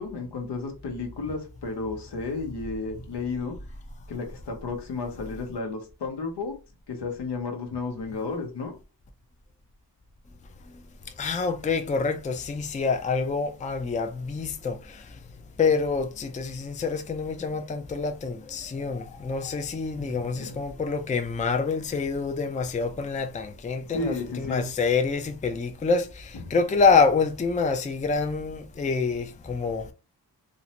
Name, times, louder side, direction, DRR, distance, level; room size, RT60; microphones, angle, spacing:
voice 1, 0.0-3.5 4.1-6.5 6.9-8.7 20.0-20.6 23.9-24.7, left 3 dB, 75° left, 0.9 m, -33 dB
voice 2, 11.2-14.8 15.6-26.1 26.5-29.8, left 4 dB, 20° left, 0.4 m, -26 dB
2.6 x 2.1 x 2.8 m
cardioid pair, 45°, 41 cm